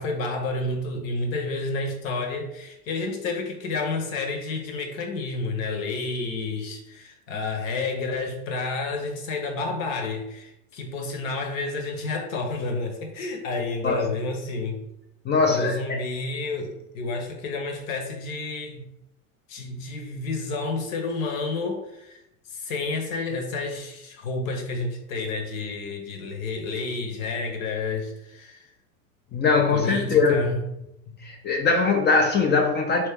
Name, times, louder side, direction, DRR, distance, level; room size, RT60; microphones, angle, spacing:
voice 1, 0.0-14.8 15.5-18.9 19.5-22.2 22.5-28.7 29.7-30.6, left 3 dB, 70° left, 3 dB, 1.0 m, -30 dB
voice 2, 15.2-16.0 29.3-30.5 31.1-33.1, left 4 dB, 25° left, 3 dB, 0.5 m, -21 dB
3.0 x 2.9 x 3.5 m, 0.85 s
hypercardioid pair, 85°, 42 cm